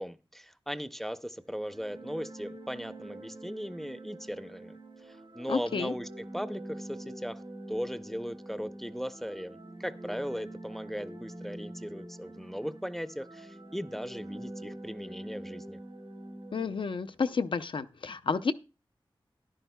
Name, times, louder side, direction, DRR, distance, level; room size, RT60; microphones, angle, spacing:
voice 1, 0.0-6.1 6.3-15.8, equal, 5° left, 12 dB, 0.6 m, -38 dB
sound 1, 1.4-17.2, right 1 dB, 90° right, 3.7 m, -45 dB
voice 2, 5.5-5.9 16.5-18.5, left 5 dB, 70° left, 11 dB, 0.6 m, -31 dB
13.5 x 11.0 x 2.2 m, 0.30 s
wide cardioid pair, 75°, 9 cm